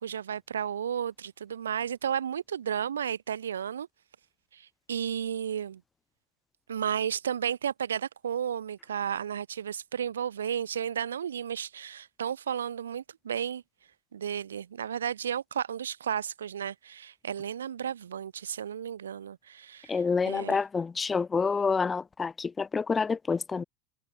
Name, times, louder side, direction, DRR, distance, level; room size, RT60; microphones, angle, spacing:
voice 1, 0.0-3.9 4.5-5.8 6.7-13.6 14.1-20.6, right 8 dB, 75° right, 0.9 m, -33 dB
voice 2, 19.9-23.6, left 5 dB, 20° left, 0.4 m, -28 dB
figure-of-eight pair, 80°, 0 cm